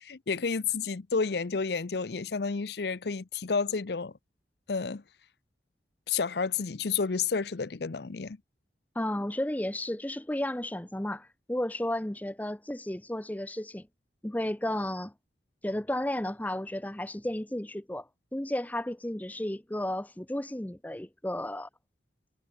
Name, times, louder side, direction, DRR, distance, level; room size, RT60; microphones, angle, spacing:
voice 1, 0.0-4.1 4.7-5.0 6.1-8.4, left 5 dB, 65° left, 0.6 m, -30 dB
voice 2, 9.0-13.9 14.2-15.1 15.6-21.7, left 1 dB, 10° left, 0.6 m, -33 dB
head